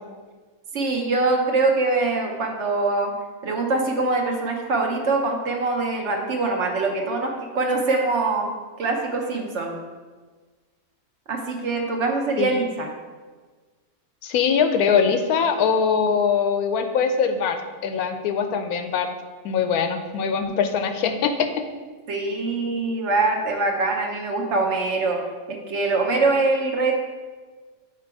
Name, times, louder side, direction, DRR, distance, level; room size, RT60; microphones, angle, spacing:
voice 1, 0.7-3.1 3.4-8.5 8.8-9.7 11.3-12.9 22.1-25.2 25.5-26.9, right 3 dB, 55° right, 1 dB, 1.0 m, -23 dB
voice 2, 14.2-19.1 19.4-21.5, left 6 dB, 90° left, 7 dB, 1.1 m, -22 dB
6.0 x 4.5 x 4.7 m, 1.4 s
omnidirectional pair, 1.5 m